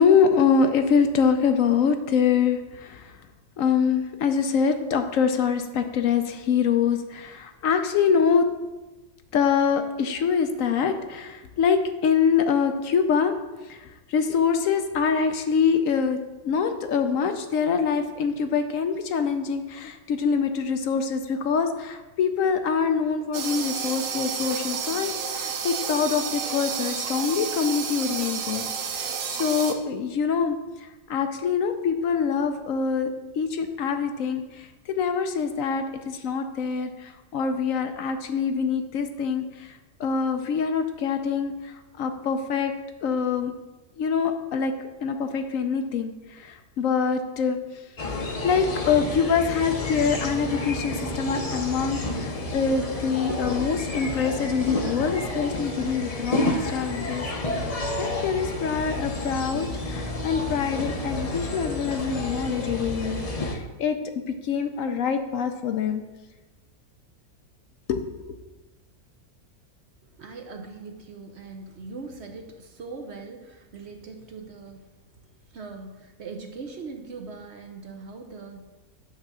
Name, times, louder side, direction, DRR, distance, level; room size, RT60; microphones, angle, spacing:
voice 1, 0.0-3.2 3.6-8.5 9.3-13.3 13.7-16.2 16.4-28.6 28.9-30.6 31.1-34.7 35.0-42.7 43.0-43.5 44.0-44.7 45.0-48.1 48.4-57.3 58.0-66.0 67.9-68.3, left 6 dB, 70° left, 7 dB, 1.0 m, -25 dB
sound 1, 23.3-29.7, right 6 dB, 70° right, 1.2 m, -31 dB
sound 2, 48.0-63.6, left 2 dB, 35° left, 0.7 m, -30 dB
voice 2, 70.0-78.7, right 4 dB, 55° right, 4 dB, 0.9 m, -41 dB
9.0 x 3.5 x 6.8 m, 1.1 s
omnidirectional pair, 1.5 m